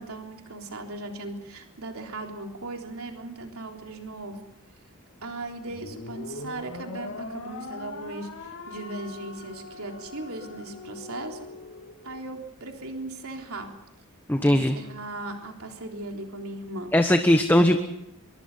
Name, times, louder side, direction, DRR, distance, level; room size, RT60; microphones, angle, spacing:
voice 1, 0.0-4.4 5.2-11.5 12.0-13.7 14.4-16.9, right 2 dB, 75° right, 2 dB, 3.6 m, -38 dB
sound 1, 5.7-12.2, left 3 dB, 65° left, 2.6 m, -41 dB
voice 2, 14.3-14.8 16.9-17.8, left 1 dB, 10° left, 6 dB, 1.2 m, -19 dB
24.5 x 23.5 x 5.6 m, 0.84 s
head